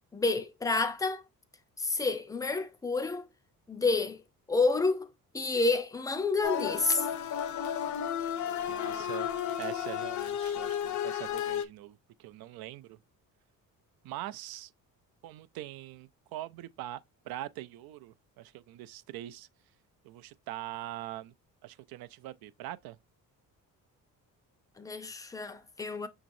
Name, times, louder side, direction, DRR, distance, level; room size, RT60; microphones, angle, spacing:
voice 1, 0.1-1.2 1.8-3.3 3.7-4.2 4.5-5.1 5.3-7.1 24.8-26.1, left 3 dB, 10° left, 0.4 m, -29 dB
sound 1, 6.4-11.6, left 9 dB, 55° left, 0.6 m, -33 dB
voice 2, 8.7-9.3 9.6-13.0 14.0-14.7 15.2-19.5 20.0-21.3 21.6-23.0, right 14 dB, 85° right, 0.5 m, -43 dB
6.1 x 3.0 x 2.5 m
cardioid pair, 170°, 35 cm